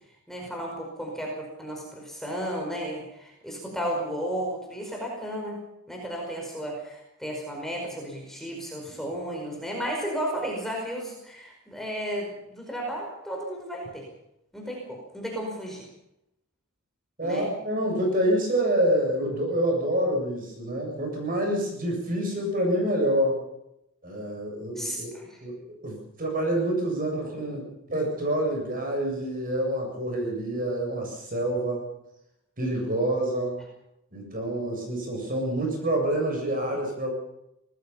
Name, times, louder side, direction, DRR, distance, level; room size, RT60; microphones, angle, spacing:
voice 1, 0.3-5.6 5.9-14.0 14.5-15.8 17.2-17.5 24.8-25.4, equal, ahead, -1 dB, 5.1 m, -33 dB
voice 2, 17.2-23.4 24.0-25.1 25.4-25.6 25.8-27.6 27.9-31.9 32.6-33.6 34.1-37.1, right 1 dB, 40° right, 2 dB, 7.4 m, -27 dB
25.0 x 19.0 x 5.8 m, 0.84 s
head